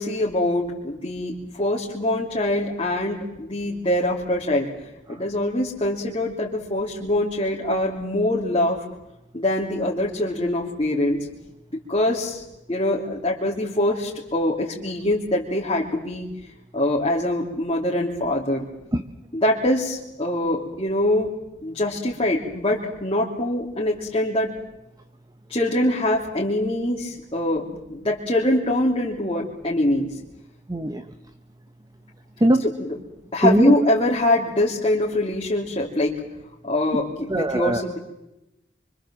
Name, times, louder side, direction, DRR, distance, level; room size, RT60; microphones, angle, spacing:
voice 1, 0.0-4.7 5.1-8.8 9.3-11.3 11.7-12.4 12.7-16.3 16.7-18.7 19.3-21.3 21.6-24.5 25.5-30.2 33.3-36.1 36.6-38.0, left 1 dB, 30° left, -4 dB, 3.1 m, -23 dB
voice 2, 30.7-31.0 32.4-32.7 33.4-33.8 37.3-37.8, right 1 dB, 20° right, 9 dB, 1.1 m, -20 dB
27.0 x 24.5 x 7.6 m, 0.93 s
head